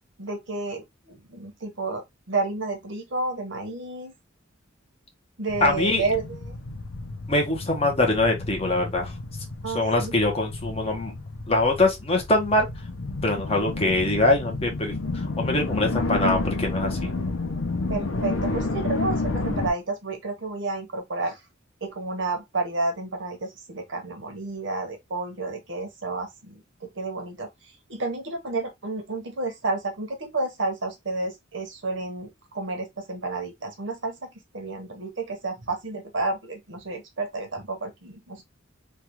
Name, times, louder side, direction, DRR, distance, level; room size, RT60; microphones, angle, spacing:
voice 1, 0.2-4.1 5.4-6.6 9.6-10.2 17.9-21.4 21.8-27.5 27.9-38.4, right 3 dB, 65° right, 1.0 m, -31 dB
sound 1, 5.5-19.7, left 3 dB, 90° left, 0.6 m, -31 dB
voice 2, 5.6-6.0 7.3-9.1 9.7-11.1 11.5-12.7 13.2-17.1, left 2 dB, 30° left, 0.9 m, -23 dB
3.3 x 2.3 x 2.9 m
head